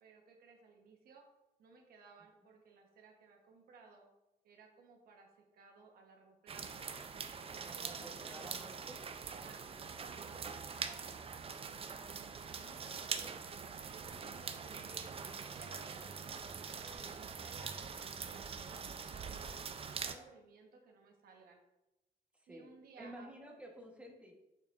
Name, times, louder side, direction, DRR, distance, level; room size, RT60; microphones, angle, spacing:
voice 1, 0.0-1.3 1.6-4.1 4.4-6.9 7.6-8.6 9.2-9.7 10.0-11.8 12.1-13.4 13.8-15.1 15.5-17.8 18.2-21.6 22.5-23.3, right 4 dB, 80° right, 2 dB, 1.1 m, -59 dB
sound 1, 6.5-20.1, right 6 dB, 40° right, 0.5 m, -44 dB
voice 2, 7.6-9.0 22.3-24.4, right 1 dB, 10° right, 0 dB, 1.1 m, -53 dB
6.6 x 5.7 x 2.5 m, 0.94 s
cardioid pair, 95°, 15 cm